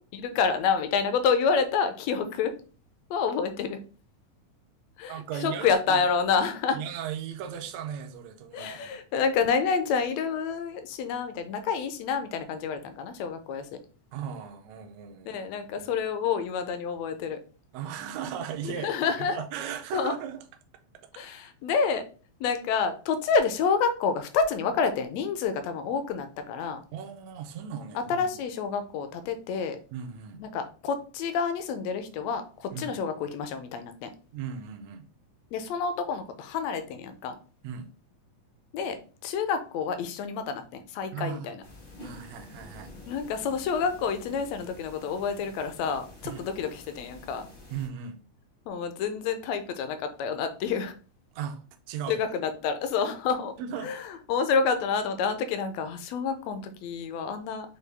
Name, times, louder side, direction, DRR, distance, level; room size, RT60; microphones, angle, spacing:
voice 1, 0.1-2.5 3.1-3.8 5.0-6.8 8.5-13.8 15.3-17.4 18.6-19.4 19.9-20.1 21.2-22.0 22.4-26.8 27.9-29.8 30.4-34.1 35.5-37.3 38.7-41.6 43.1-47.5 48.7-50.9 52.1-53.5 53.8-57.8, left 5 dB, 80° left, 8 dB, 1.6 m, -28 dB
voice 2, 5.1-6.0 6.7-8.9 14.1-15.4 15.8-15.9 17.7-20.4 26.9-28.3 29.9-30.4 32.7-32.9 34.3-35.1 37.6-37.9 41.1-41.5 42.0-42.9 46.2-46.5 47.7-48.2 51.3-52.2 53.6-53.9, right 8 dB, 75° right, 5 dB, 1.7 m, -37 dB
sound 1, 41.6-47.9, left 2 dB, 55° left, 0.5 m, -48 dB
6.5 x 2.3 x 3.3 m, 0.37 s
omnidirectional pair, 3.4 m